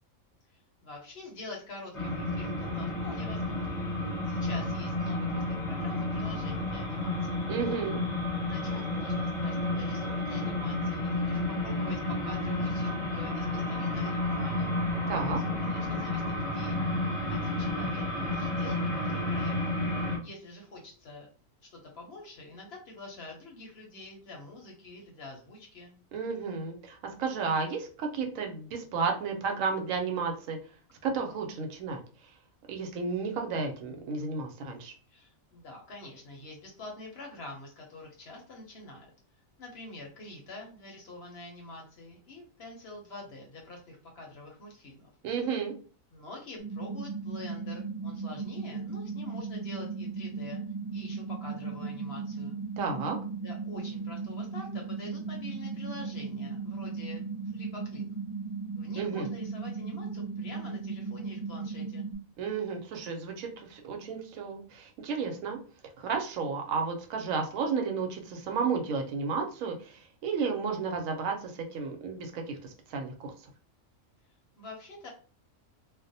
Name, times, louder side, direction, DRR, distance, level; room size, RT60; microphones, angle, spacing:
voice 1, 0.5-3.8 4.3-7.4 8.4-14.8 15.6-16.8 17.3-19.5 20.2-21.3 21.7-26.0 35.1-39.1 39.6-45.1 46.1-50.6 50.9-52.6 53.4-57.2 57.5-58.0 58.8-62.1 74.6-75.1, left 2 dB, 60° left, 0 dB, 0.7 m, -46 dB
sound 1, 1.9-20.2, left 2 dB, 30° left, 0.7 m, -31 dB
voice 2, 7.5-8.0 15.1-15.4 26.1-30.6 31.0-32.0 32.7-34.9 45.2-45.7 52.8-53.2 59.0-59.3 62.4-65.6 66.0-73.3, right 5 dB, 80° right, 3 dB, 1.0 m, -32 dB
sound 2, 46.6-62.2, right 4 dB, 10° right, 0.3 m, -37 dB
2.4 x 2.0 x 2.6 m, 0.40 s
omnidirectional pair, 1.4 m